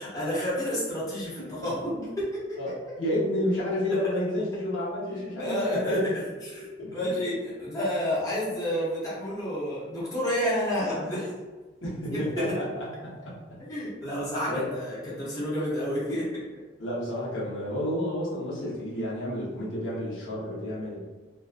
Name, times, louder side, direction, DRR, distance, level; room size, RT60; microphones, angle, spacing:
voice 1, 0.0-2.6 4.0-4.2 5.4-11.3 12.1-12.6 13.6-16.3, equal, 20° left, -9 dB, 0.7 m, -30 dB
voice 2, 2.6-6.0 6.8-7.1 11.8-12.8 13.2-13.3 14.5-14.6 16.8-21.0, left 1 dB, 85° left, -7 dB, 0.9 m, -30 dB
2.4 x 2.3 x 2.4 m, 1.3 s
head